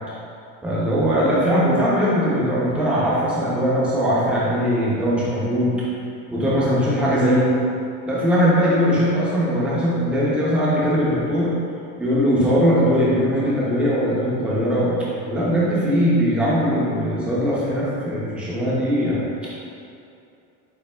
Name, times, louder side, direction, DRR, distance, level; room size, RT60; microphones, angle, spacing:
voice 1, 0.6-5.7 6.3-7.6 8.1-11.6 12.0-19.5, equal, 5° right, -7 dB, 0.4 m, -20 dB
8.4 x 2.8 x 2.2 m, 2.6 s
cardioid pair, 180°, 36 cm